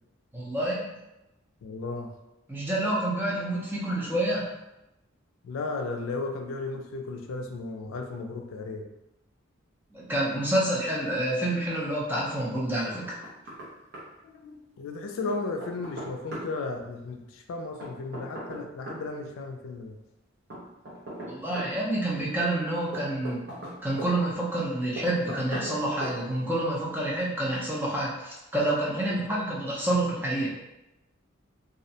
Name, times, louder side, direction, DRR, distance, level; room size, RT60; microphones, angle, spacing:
voice 1, 0.3-0.9 2.5-4.5 9.9-13.1 21.3-23.4 23.8-30.5, right 1 dB, 10° right, -6 dB, 0.5 m, -28 dB
voice 2, 1.6-2.1 5.4-8.9 14.2-20.0 29.1-29.4, left 3 dB, 85° left, 4 dB, 0.3 m, -35 dB
Knock, 12.9-13.7 13.9-14.0 15.3-16.5 17.8-19.0 20.5-21.7 22.9-24.1 25.0-25.8 26.0-26.2, right 1 dB, 55° right, 0.6 m, -38 dB
2.3 x 2.0 x 2.7 m, 0.94 s
head